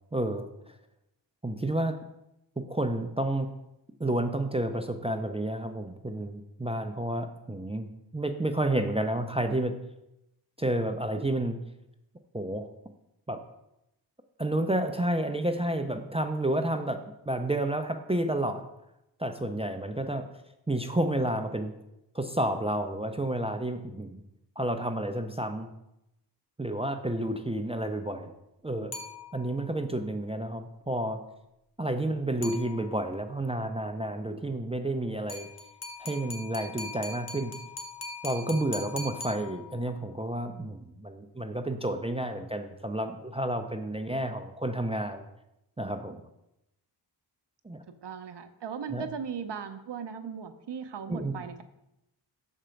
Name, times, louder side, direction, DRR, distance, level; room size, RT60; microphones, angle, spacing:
voice 1, 0.1-0.7 1.4-2.0 2.6-3.5 4.0-9.7 10.6-11.6 12.3-12.7 13.3-13.4 14.4-18.7 19.2-20.3 20.7-21.7 22.1-24.2 24.6-25.7 26.6-28.3 28.6-28.9 29.3-31.2 31.8-35.5 36.0-37.5 38.2-45.2 45.8-46.2 47.6-47.8 48.9-49.1 51.1-51.3, right 1 dB, 15° right, 7 dB, 0.4 m, -30 dB
sound 1, 28.9-29.7 32.4-33.2 35.3-40.0, left 3 dB, 35° left, 1.0 m, -41 dB
voice 2, 48.0-51.6, right 6 dB, 70° right, 8 dB, 0.7 m, -38 dB
6.6 x 4.4 x 5.1 m, 0.87 s
wide cardioid pair, 95°, 44 cm